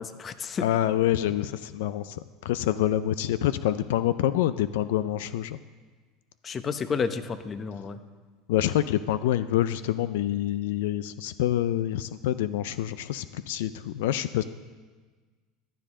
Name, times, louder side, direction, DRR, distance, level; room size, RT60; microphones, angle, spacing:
voice 1, 0.0-0.6 6.4-8.0, left 5 dB, 30° left, 11 dB, 0.9 m, -31 dB
voice 2, 0.6-5.6 8.5-14.4, left 12 dB, 80° left, 14 dB, 0.4 m, -26 dB
15.0 x 11.5 x 3.8 m, 1.4 s
supercardioid pair, 100°, 0 cm